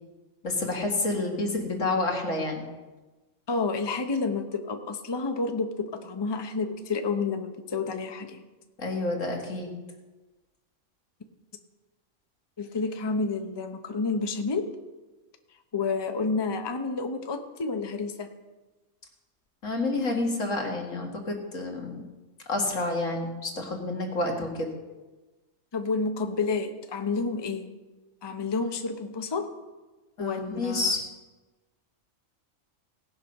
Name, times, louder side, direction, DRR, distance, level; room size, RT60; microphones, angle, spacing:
voice 1, 0.4-2.6 8.8-9.7 19.6-22.0 22.5-24.7 30.2-31.0, left 2 dB, 80° left, 1 dB, 2.2 m, -29 dB
voice 2, 3.5-8.4 12.6-14.7 15.7-18.3 25.7-27.7 28.2-29.5 30.2-30.9, left 4 dB, 25° left, 6 dB, 0.7 m, -30 dB
18.0 x 6.2 x 5.3 m, 1.2 s
omnidirectional pair, 1.3 m